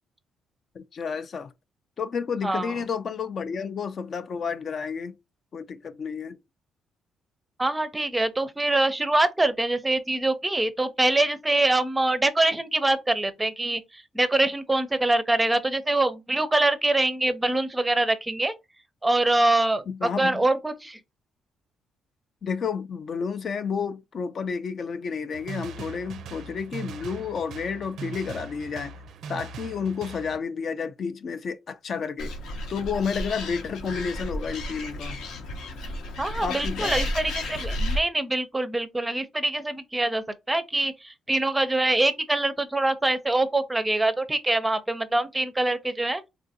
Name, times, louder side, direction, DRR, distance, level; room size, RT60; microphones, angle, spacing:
voice 1, 0.7-1.5 2.0-5.2 5.5-6.4 19.9-20.4 22.4-29.0 29.3-32.3 32.7-35.2 36.4-37.1, left 6 dB, 50° left, 0.3 m, -31 dB
voice 2, 2.4-2.7 7.6-18.5 19.0-21.0 36.2-46.2, right 2 dB, 15° right, 0.5 m, -24 dB
sound 1, 25.3-30.4, right 5 dB, 75° right, 0.4 m, -40 dB
Animal, 32.2-38.0, left 1 dB, 90° left, 0.8 m, -32 dB
3.7 x 2.4 x 2.6 m
cardioid pair, 90°, 0 cm